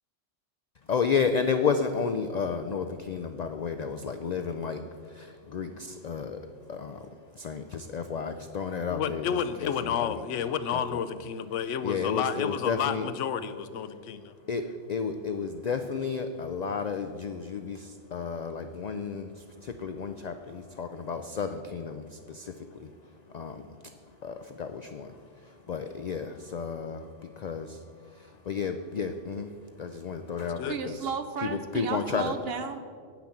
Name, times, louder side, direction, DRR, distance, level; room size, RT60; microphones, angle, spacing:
voice 1, 0.9-10.2 10.7-11.0 11.8-13.1 14.3-31.1 31.4-32.3, left 5 dB, 65° left, 7 dB, 0.4 m, -32 dB
voice 2, 8.9-14.3 30.6-30.8, left 8 dB, 85° left, 12 dB, 0.9 m, -31 dB
voice 3, 30.7-32.8, right 5 dB, 60° right, 9 dB, 0.8 m, -33 dB
8.7 x 6.0 x 7.0 m, 2.1 s
omnidirectional pair, 1.2 m